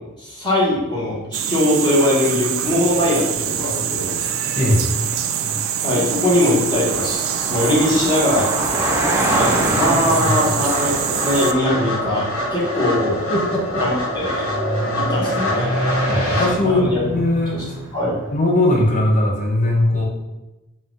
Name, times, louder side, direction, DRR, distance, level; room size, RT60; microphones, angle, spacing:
voice 1, 0.2-4.1 5.8-8.5 9.1-13.2 13.8-14.4 15.0-15.7 16.6-17.0 17.9-18.2, left 1 dB, 20° left, -8 dB, 1.3 m, -21 dB
sound 1, 1.3-11.5, right 9 dB, 65° right, 0.3 m, -25 dB
Car passing by, 2.5-18.5, right 1 dB, 10° right, 0.6 m, -28 dB
voice 2, 4.5-4.9 9.9-10.4 13.3-13.8 16.1-17.8 18.3-20.1, left 1 dB, 35° left, 0 dB, 0.7 m, -19 dB
sound 2, 6.4-6.5 6.8-16.5, left 1 dB, 75° left, 1.2 m, -26 dB
4.1 x 2.4 x 3.9 m, 1.0 s
head